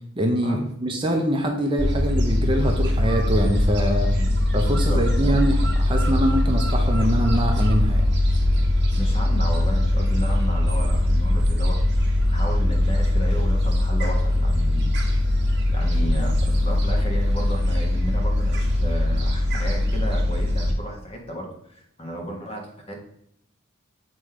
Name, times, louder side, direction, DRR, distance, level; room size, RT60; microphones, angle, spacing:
voice 1, 0.2-4.1 4.5-8.1, equal, 25° right, 2 dB, 0.7 m, -24 dB
Gull seagull, 1.8-20.7, left 1 dB, 55° right, 1.3 m, -21 dB
voice 2, 4.7-5.4 9.0-11.8 12.2-14.9 15.7-23.0, right 1 dB, 30° left, 1 dB, 1.4 m, -33 dB
7.6 x 3.2 x 4.8 m, 0.75 s
head